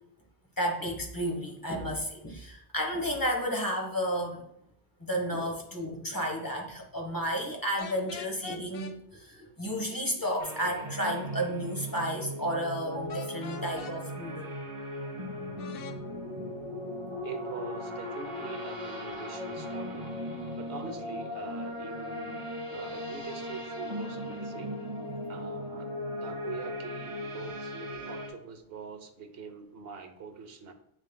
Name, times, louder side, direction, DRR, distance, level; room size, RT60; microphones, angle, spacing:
voice 1, 0.6-4.4 5.0-14.5 16.1-16.2, equal, 20° left, 0 dB, 1.1 m, -32 dB
sound 1, 7.8-8.9 13.1-14.0 15.6-16.0, left 7 dB, 70° left, 0.8 m, -43 dB
sound 2, 10.4-28.3, equal, 30° right, 1.2 m, -38 dB
voice 2, 17.2-24.7 25.3-25.9 26.2-30.7, right 6 dB, 70° right, 7 dB, 1.0 m, -44 dB
7.4 x 6.4 x 2.2 m, 0.75 s
omnidirectional pair, 1.0 m